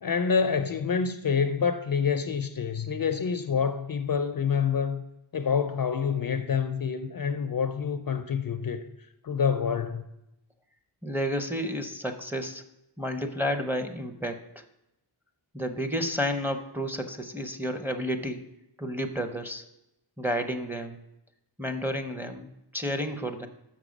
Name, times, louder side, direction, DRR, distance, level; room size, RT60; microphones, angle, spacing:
voice 1, 0.0-5.0 5.3-8.9 9.2-10.0, left 6 dB, 50° left, 0.4 m, -27 dB
voice 2, 11.0-12.6 13.0-14.4 15.5-18.5 18.8-19.6 20.2-21.0 21.6-23.5, equal, 5° right, 0.6 m, -31 dB
6.4 x 6.0 x 5.1 m
wide cardioid pair, 80°, 48 cm